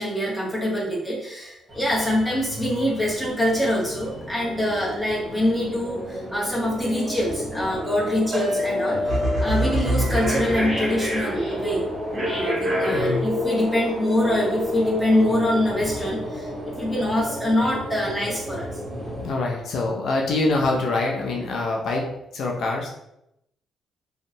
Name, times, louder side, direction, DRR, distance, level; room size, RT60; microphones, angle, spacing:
voice 1, 0.0-11.8 12.2-16.5 16.8-18.7, left 1 dB, 5° left, -5 dB, 0.9 m, -24 dB
sound 1, 1.7-19.3, equal, 20° right, 1.0 m, -30 dB
sound 2, 9.1-11.5, right 1 dB, 55° right, 0.5 m, -26 dB
voice 2, 12.9-13.3 19.2-22.9, left 2 dB, 70° left, 0 dB, 0.4 m, -25 dB
2.5 x 2.1 x 2.7 m, 0.82 s
cardioid pair, 90°, 0 cm